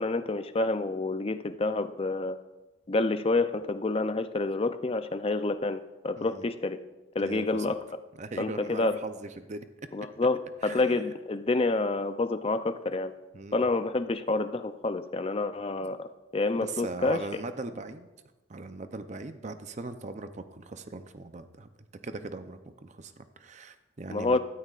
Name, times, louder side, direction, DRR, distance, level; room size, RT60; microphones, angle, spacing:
voice 1, 0.0-2.4 2.9-6.8 7.1-7.8 8.4-9.0 9.9-13.1 13.5-17.2 24.1-24.4, left 3 dB, 30° left, 11 dB, 0.4 m, -28 dB
voice 2, 6.2-6.5 7.2-7.7 8.2-9.7 10.6-11.0 13.3-13.7 16.6-18.1 18.5-21.7 22.0-24.4, right 3 dB, 35° right, 9 dB, 0.6 m, -40 dB
15.5 x 13.0 x 2.4 m, 1.1 s
head